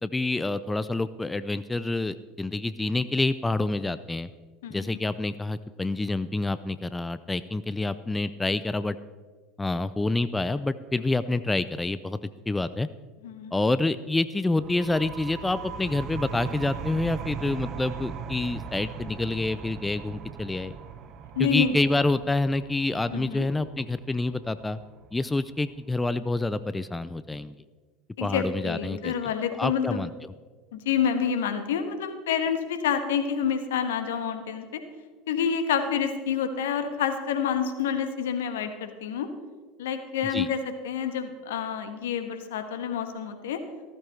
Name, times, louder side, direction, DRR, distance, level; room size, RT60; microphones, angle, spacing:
voice 1, 0.0-4.3 4.7-9.0 9.6-12.2 12.5-12.9 13.5-20.7 21.4-24.8 25.1-27.5 28.2-29.1 29.6-30.1 40.3-40.5, left 2 dB, 10° left, 14 dB, 0.5 m, -27 dB
voice 2, 4.6-5.1 13.2-13.5 21.3-21.8 23.1-23.5 28.2-30.1 30.7-34.8 35.3-39.3 39.8-43.6, left 7 dB, 75° left, 8 dB, 1.3 m, -28 dB
sound 1, 14.6-26.0, right 6 dB, 45° right, 1.0 m, -39 dB
15.5 x 14.5 x 3.3 m, 1.5 s
hypercardioid pair, 75°, 0 cm